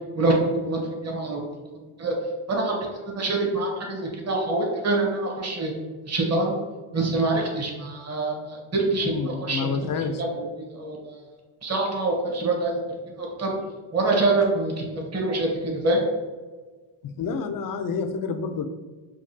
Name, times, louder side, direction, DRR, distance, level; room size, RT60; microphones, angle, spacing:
voice 1, 0.1-1.6 2.0-2.1 2.5-5.7 6.0-6.6 6.9-9.8 10.2-11.2 11.6-12.8 13.2-13.5 13.9-14.8 15.1-16.0, right 2 dB, 30° right, -1 dB, 1.1 m, -25 dB
voice 2, 9.0-10.2 17.2-18.6, left 5 dB, 45° left, 8 dB, 0.5 m, -28 dB
5.2 x 2.3 x 2.7 m, 1.4 s
cardioid pair, 85°, 49 cm